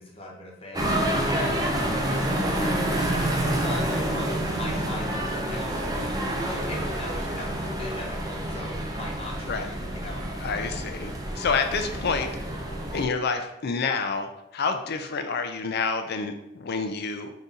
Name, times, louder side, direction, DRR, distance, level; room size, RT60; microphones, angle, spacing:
voice 1, 0.0-2.8 3.6-6.0 6.5-10.3, left 1 dB, 30° left, -2 dB, 0.9 m, -40 dB
sound 1, 0.7-13.0, right 1 dB, 20° right, 0.5 m, -28 dB
voice 2, 10.4-12.3 12.9-17.3, left 4 dB, 55° left, 7 dB, 0.5 m, -28 dB
4.0 x 2.7 x 3.7 m, 0.85 s
head